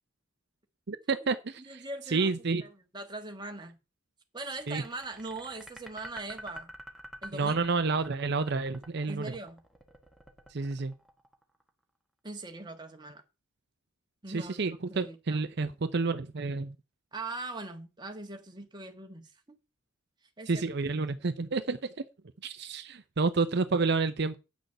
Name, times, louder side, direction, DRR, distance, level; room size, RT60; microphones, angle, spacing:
voice 1, 0.9-2.6 4.7-4.8 7.3-9.3 10.5-10.9 14.3-16.7 20.5-21.8 22.4-24.4, right 4 dB, 55° right, 0.6 m, -30 dB
voice 2, 1.6-2.3 2.6-3.8 4.3-6.7 7.2-7.6 9.1-9.6 12.2-13.2 14.2-14.6 14.9-15.4 17.1-19.6 20.4-20.7, right 2 dB, 20° right, 1.5 m, -41 dB
sound 1, 4.6-11.7, equal, ahead, 1.4 m, -47 dB
9.3 x 6.4 x 6.6 m
head